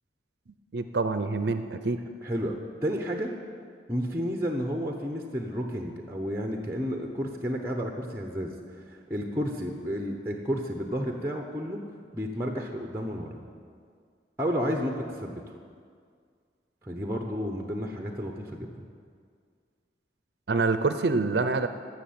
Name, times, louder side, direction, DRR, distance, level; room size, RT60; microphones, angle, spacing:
voice 1, 0.7-2.0 20.5-21.7, right 3 dB, 65° right, 9 dB, 0.6 m, -26 dB
voice 2, 2.2-3.3 3.9-8.5 8.9-11.8 12.1-13.4 14.4-15.6 16.8-18.8, equal, 15° right, 2 dB, 0.8 m, -31 dB
15.5 x 6.4 x 8.6 m, 2.1 s
head